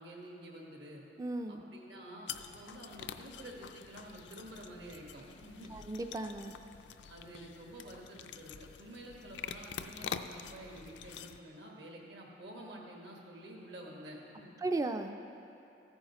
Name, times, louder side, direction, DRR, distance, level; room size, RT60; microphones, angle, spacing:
voice 1, 0.0-1.0 1.5-5.7 7.1-14.5, right 1 dB, 70° right, -1 dB, 1.5 m, -49 dB
voice 2, 1.2-1.6 5.7-6.5 14.6-15.3, right 2 dB, 20° right, 6 dB, 0.3 m, -36 dB
sound 1, 2.3-11.4, left 7 dB, 75° left, 0.4 m, -46 dB
14.5 x 8.9 x 3.0 m, 2.8 s
head